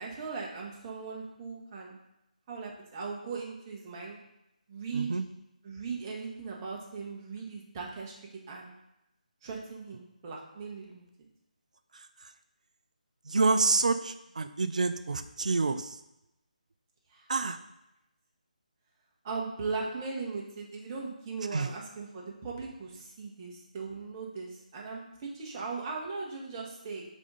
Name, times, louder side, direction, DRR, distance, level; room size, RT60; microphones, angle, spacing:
voice 1, 0.0-2.0 2.5-4.2 4.7-5.1 5.6-8.1 8.5-8.7 9.4-11.0 17.1-17.3 19.2-27.1, right 4 dB, 25° right, -2 dB, 1.1 m, -38 dB
voice 2, 4.9-5.2 11.9-12.1 13.3-16.0 17.3-17.6 21.5-21.7, right 3 dB, 55° right, 10 dB, 0.5 m, -28 dB
4.9 x 3.7 x 5.4 m, 0.88 s
figure-of-eight pair, 150°, 5 cm